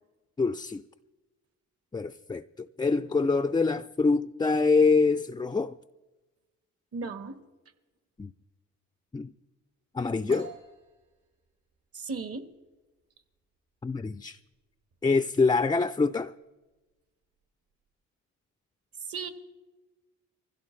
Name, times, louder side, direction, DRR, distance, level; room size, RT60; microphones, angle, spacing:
voice 1, 0.4-0.8 1.9-5.8 8.2-8.3 9.1-9.3 9.9-10.5 13.8-14.4 15.0-16.3, left 4 dB, 15° left, 0.4 m, -25 dB
voice 2, 6.9-7.4 11.9-12.5 19.0-19.3, right 4 dB, 50° right, 1.5 m, -36 dB
sound 1, 10.3-17.9, right 5 dB, 70° right, 4.8 m, -52 dB
24.0 x 16.0 x 3.2 m
cardioid pair, 90°, 30 cm